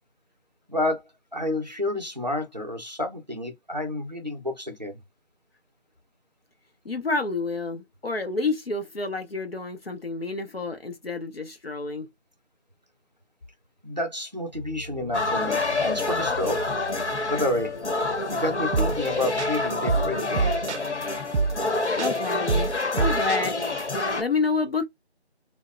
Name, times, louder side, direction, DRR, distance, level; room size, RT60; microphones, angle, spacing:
voice 1, 0.7-1.0 1.3-5.0 13.8-16.6 17.3-17.7 18.3-20.5, left 1 dB, 40° right, 0.6 m, -29 dB
voice 2, 6.8-12.1 21.9-23.6 24.2-24.8, left 4 dB, 60° left, 0.6 m, -29 dB
sound 1, 14.5-21.2, left 3 dB, 45° left, 0.9 m, -43 dB
sound 2, 15.1-24.2, left 3 dB, 85° left, 1.0 m, -27 dB
sound 3, 18.7-19.1 19.4-21.0 21.3-21.7 22.0-23.8, right 4 dB, 90° right, 0.5 m, -26 dB
2.9 x 2.1 x 2.4 m
figure-of-eight pair, 175°, 33 cm